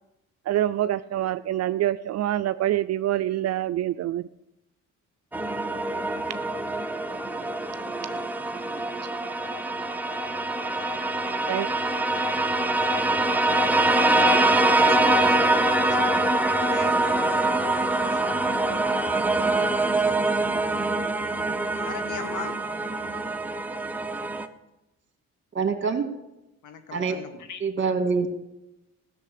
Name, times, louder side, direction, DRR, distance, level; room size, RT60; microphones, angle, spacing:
voice 1, 0.5-4.3 11.5-11.7, right 13 dB, 60° right, 12 dB, 0.5 m, -26 dB
sound 1, 5.3-24.5, right 2 dB, 5° right, 0.9 m, -24 dB
voice 2, 14.8-19.0 21.4-22.6 26.6-27.7, left 6 dB, 80° left, 8 dB, 1.6 m, -41 dB
voice 3, 25.5-26.1 26.9-27.1 27.6-28.3, right 5 dB, 40° right, 6 dB, 2.1 m, -25 dB
15.0 x 6.7 x 8.4 m, 0.93 s
cardioid pair, 90°, 30 cm